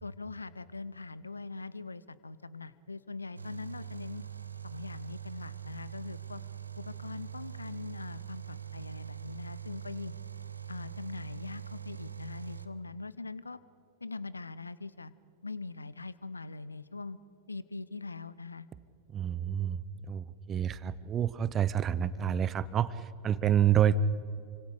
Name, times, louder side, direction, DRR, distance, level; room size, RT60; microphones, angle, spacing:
voice 1, 0.0-4.2 4.6-6.4 6.8-10.1 10.7-13.6 14.0-15.1 15.4-17.2 17.5-18.7, left 3 dB, 80° left, 18 dB, 0.8 m, -42 dB
sound 1, 3.4-12.7, right 9 dB, 80° right, 1.0 m, -43 dB
voice 2, 19.1-19.8 20.1-24.0, right 10 dB, 25° right, 17 dB, 0.9 m, -28 dB
28.5 x 26.0 x 5.0 m, 2.5 s
figure-of-eight pair, 90°, 0 cm